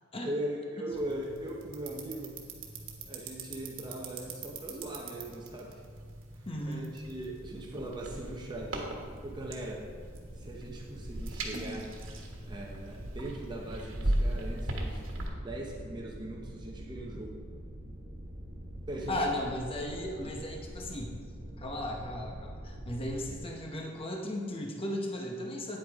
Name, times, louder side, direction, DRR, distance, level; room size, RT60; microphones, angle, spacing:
voice 1, 0.2-2.4 3.0-5.8 6.4-8.9 9.2-9.9 10.4-11.9 12.5-15.1 15.4-17.4 18.9-19.2 20.2-20.6, right 1 dB, 20° right, -1 dB, 0.8 m, -40 dB
sound 1, 0.9-15.3, right 1 dB, 65° right, 1.4 m, -39 dB
voice 2, 6.5-6.8 19.1-21.2 21.6-25.8, left 1 dB, 25° left, 0 dB, 0.9 m, -36 dB
sound 2, 7.6-23.4, right 1 dB, 50° right, 1.8 m, -46 dB
9.5 x 8.5 x 3.5 m, 2.2 s
head